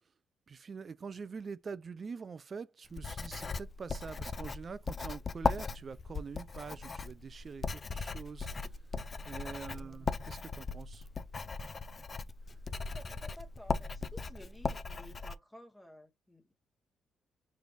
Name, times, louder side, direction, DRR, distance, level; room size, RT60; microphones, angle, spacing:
voice 1, 0.5-8.5 9.3-11.1, right 5 dB, 40° right, 0.4 m, -45 dB
Writing, 2.9-15.3, left 4 dB, 35° left, 0.3 m, -38 dB
voice 2, 9.5-10.1 12.6-16.5, equal, 5° left, 1.2 m, -54 dB
4.7 x 3.2 x 2.5 m
cardioid pair, 90°, 0 cm